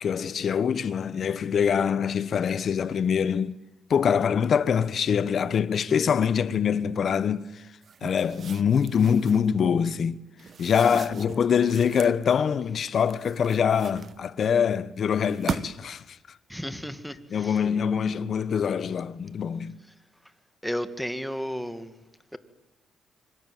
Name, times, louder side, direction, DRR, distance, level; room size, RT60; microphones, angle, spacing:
voice 1, 0.0-3.5 3.9-7.6 8.0-10.2 10.6-16.2 17.3-19.8, left 7 dB, 55° left, 1.1 m, -24 dB
sound 1, 7.8-9.5 10.4-12.2 12.9-14.5 15.1-16.0, right 6 dB, 50° right, 1.2 m, -38 dB
voice 2, 16.5-17.1 20.6-21.9, equal, ahead, 2.1 m, -32 dB
25.5 x 24.5 x 9.3 m
cardioid pair, 90°, 0 cm